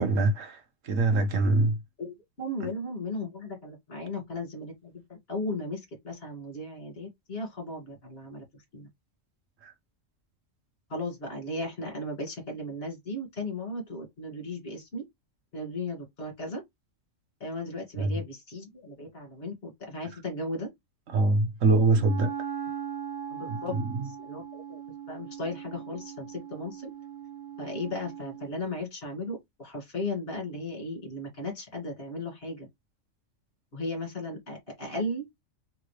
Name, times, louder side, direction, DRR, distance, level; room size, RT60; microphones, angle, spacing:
voice 1, 0.0-1.8 9.6-9.7 18.0-18.2 21.1-22.3 23.5-24.1, right 2 dB, 75° right, 1.4 m, -24 dB
voice 2, 2.0-8.4 8.7-8.9 10.9-15.0 15.5-16.6 17.4-20.7 23.3-23.8 24.2-24.8 25.1-26.9 27.6-32.7 33.7-35.3, left 2 dB, 45° left, 2.2 m, -36 dB
Wind instrument woodwind instrument, 21.9-28.6, right 8 dB, 45° right, 1.2 m, -39 dB
3.8 x 3.6 x 3.2 m
omnidirectional pair, 1.4 m